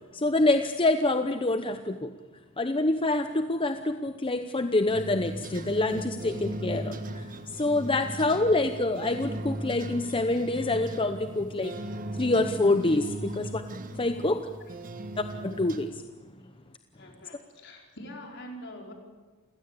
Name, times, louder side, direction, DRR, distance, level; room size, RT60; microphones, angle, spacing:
voice 1, 0.1-2.1 2.6-11.7 12.1-13.6 13.9-14.5 15.2-16.0, left 2 dB, 25° left, 8 dB, 0.8 m, -26 dB
sound 1, 4.9-15.9, right 1 dB, 40° right, 1.5 m, -38 dB
voice 2, 16.9-18.9, equal, 55° left, 1 dB, 5.0 m, -44 dB
28.5 x 16.5 x 8.6 m, 1.3 s
head